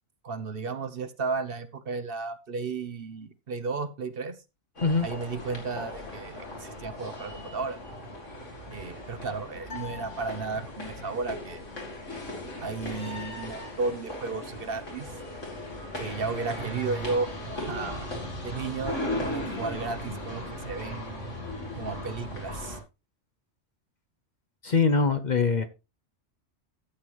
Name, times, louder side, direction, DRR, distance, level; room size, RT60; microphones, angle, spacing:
voice 1, 0.2-4.3 5.0-7.8 8.7-11.6 12.6-15.1 15.9-18.1 18.4-21.2 21.8-22.8, right 4 dB, 55° right, 1.0 m, -34 dB
sound 1, 4.8-22.8, left 1 dB, 90° left, 3.4 m, -37 dB
sound 2, 9.7-11.1, left 10 dB, 60° left, 1.9 m, -45 dB
voice 2, 24.6-25.7, left 4 dB, 45° left, 0.8 m, -23 dB
13.0 x 8.0 x 3.0 m
omnidirectional pair, 1.2 m